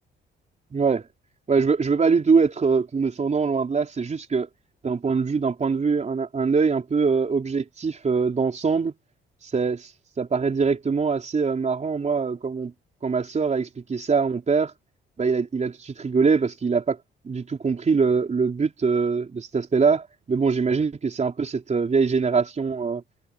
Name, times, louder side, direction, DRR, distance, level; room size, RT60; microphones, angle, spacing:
voice 1, 0.7-1.1 1.5-4.5 4.8-8.9 9.4-9.9 10.2-12.7 13.0-14.7 15.2-17.0 17.2-23.0, right 5 dB, 35° right, 4.4 m, -23 dB
cardioid pair, 90°, 20 cm